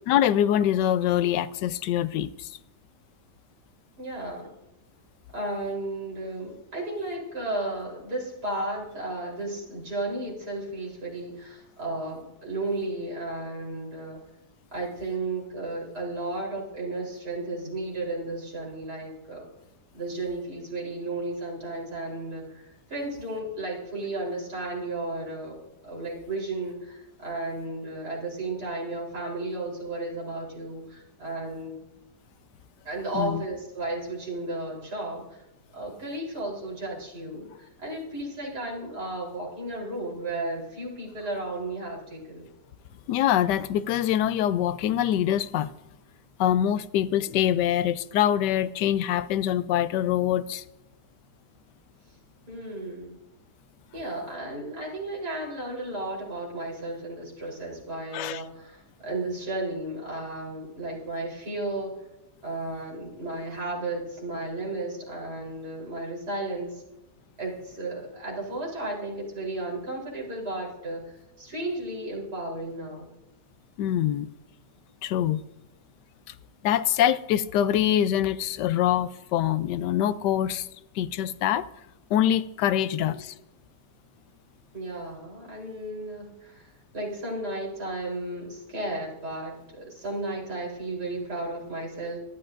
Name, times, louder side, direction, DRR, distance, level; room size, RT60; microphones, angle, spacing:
voice 1, 0.1-2.6 33.1-33.4 43.1-45.7 46.4-50.6 58.1-58.4 73.8-74.3 75.0-75.4 76.6-80.7 80.9-81.7 82.1-83.3, left 11 dB, 90° left, 1.2 m, -24 dB
voice 2, 4.0-4.5 5.3-14.2 14.7-19.5 19.9-25.6 25.8-31.7 32.8-35.4 35.7-42.5 52.5-53.2 53.9-61.9 62.4-66.8 67.4-73.1 82.7-83.2 84.7-92.2, right 2 dB, 70° right, 4.4 m, -34 dB
25.5 x 11.5 x 2.6 m
omnidirectional pair, 1.8 m